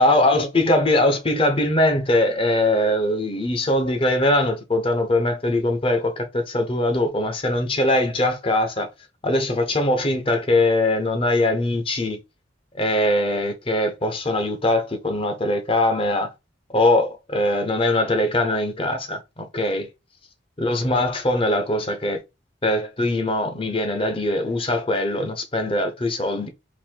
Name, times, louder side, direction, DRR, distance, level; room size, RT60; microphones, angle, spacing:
voice 1, 0.0-8.9 9.2-12.2 12.7-16.3 16.7-19.9 20.6-22.2 22.6-26.5, left 1 dB, 30° left, 0.9 m, -21 dB
4.1 x 2.7 x 4.4 m
head